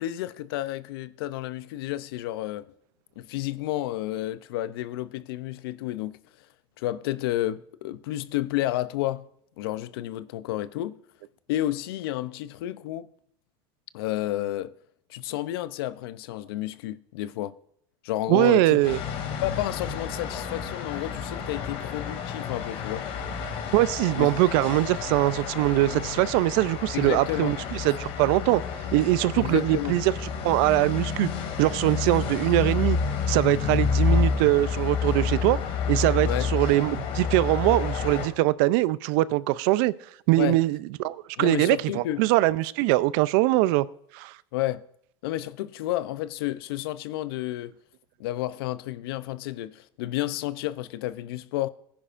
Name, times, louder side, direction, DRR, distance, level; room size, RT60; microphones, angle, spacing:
voice 1, 0.0-2.6 3.2-6.2 6.8-9.3 9.6-11.0 11.5-13.1 13.9-14.7 15.1-17.5 18.0-18.8 19.4-23.0 24.2-24.3 26.9-27.6 29.4-30.0 36.2-36.5 40.4-40.6 41.4-42.2 44.5-44.8 45.2-47.7 48.2-51.7, left 14 dB, 80° left, 0.6 m, -31 dB
voice 2, 18.3-19.0 23.7-28.6 28.9-30.1 30.4-31.3 31.6-33.0 33.3-35.6 35.9-39.9 40.3-43.9 44.1-44.4, right 17 dB, 65° right, 0.5 m, -22 dB
sound 1, 18.8-38.3, left 6 dB, 55° left, 2.5 m, -29 dB
17.5 x 10.0 x 2.5 m
supercardioid pair, 110°, 12 cm